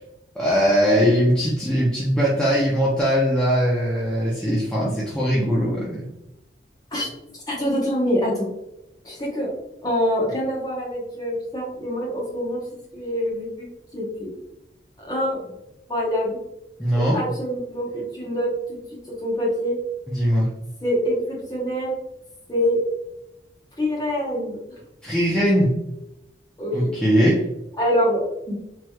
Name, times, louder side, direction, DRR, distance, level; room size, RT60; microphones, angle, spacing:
voice 1, 0.4-6.1 16.8-17.2 20.1-20.5 25.0-25.8 26.7-27.5, equal, 5° left, -7 dB, 0.5 m, -20 dB
voice 2, 7.5-8.5 9.0-9.5 9.8-14.3 15.0-15.5 15.9-16.4 17.1-19.8 20.8-22.0 22.5-22.8 23.8-24.6 26.6-26.9 27.8-28.6, equal, 20° left, -4 dB, 0.9 m, -25 dB
3.2 x 3.0 x 2.2 m, 0.90 s
head